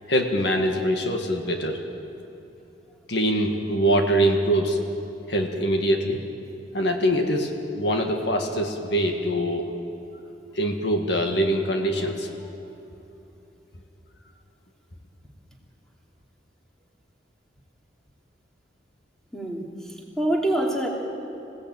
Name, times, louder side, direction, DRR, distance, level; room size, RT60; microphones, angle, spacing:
voice 1, 0.1-1.9 3.1-4.8 5.3-6.2 6.7-9.8 10.5-12.3, equal, 70° left, 3 dB, 1.9 m, -23 dB
voice 2, 19.3-20.9, right 1 dB, 5° left, -2 dB, 3.0 m, -26 dB
26.5 x 17.5 x 9.0 m, 3.0 s
head